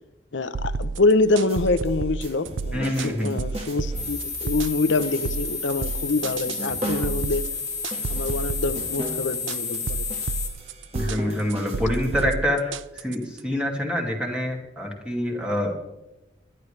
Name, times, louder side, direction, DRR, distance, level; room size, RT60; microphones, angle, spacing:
voice 1, 0.3-7.5 8.0-10.0, left 3 dB, 75° left, 0.8 m, -25 dB
sound 1, 0.5-13.4, right 4 dB, 80° right, 0.5 m, -31 dB
sound 2, 1.3-12.3, right 1 dB, 35° right, 1.8 m, -38 dB
voice 2, 2.7-3.4 10.9-15.7, equal, 5° right, 2.3 m, -26 dB
sound 3, 3.9-10.5, left 5 dB, 15° left, 2.0 m, -31 dB
22.5 x 11.0 x 3.3 m
head